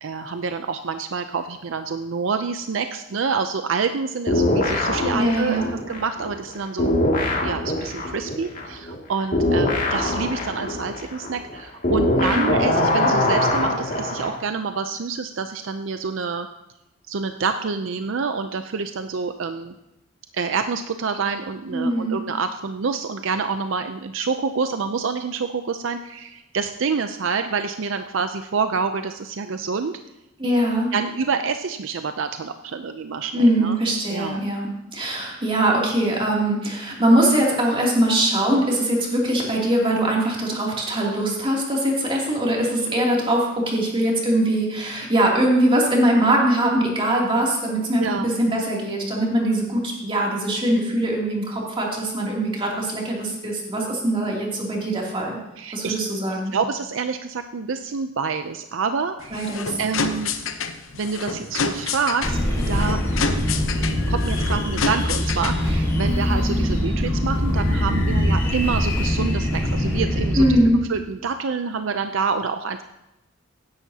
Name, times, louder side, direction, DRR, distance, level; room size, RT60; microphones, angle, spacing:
voice 1, 0.0-6.9 7.4-16.5 17.1-19.7 20.3-30.0 30.9-33.8 34.1-34.4 48.0-48.3 55.6-56.0 56.5-59.5 59.8-60.3 60.9-62.4 62.7-63.3 64.1-70.6 70.9-72.8, right 5 dB, 70° right, 8 dB, 0.5 m, -27 dB
sound 1, 4.3-6.5 6.8-14.4, left 1 dB, 45° left, 2.3 m, -23 dB
voice 2, 5.1-5.6 12.2-12.6 21.7-22.2 30.4-30.9 33.3-55.4 55.7-56.5 59.3-59.8 70.3-70.8, right 1 dB, 30° right, -2 dB, 2.8 m, -22 dB
sound 2, 59.2-65.8, left 5 dB, 85° left, 0.9 m, -29 dB
sound 3, 62.2-70.6, left 1 dB, 15° left, 4.9 m, -23 dB
16.0 x 10.5 x 2.8 m, 0.94 s
head